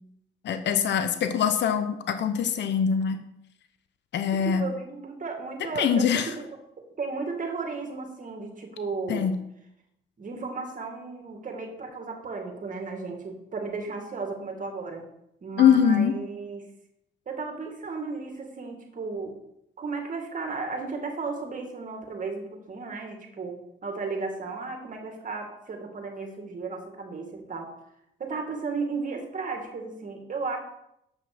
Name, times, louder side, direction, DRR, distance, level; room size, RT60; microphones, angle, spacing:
voice 1, 0.4-3.2 4.1-4.6 5.8-6.3 9.1-9.3 15.6-16.1, left 8 dB, 65° left, 9 dB, 0.9 m, -23 dB
voice 2, 4.3-9.3 10.2-15.0 15.4-16.7 17.3-19.4 19.8-27.7 28.2-30.6, right 4 dB, 40° right, 3 dB, 2.3 m, -34 dB
8.0 x 6.0 x 6.1 m, 0.80 s
cardioid pair, 90°, 20 cm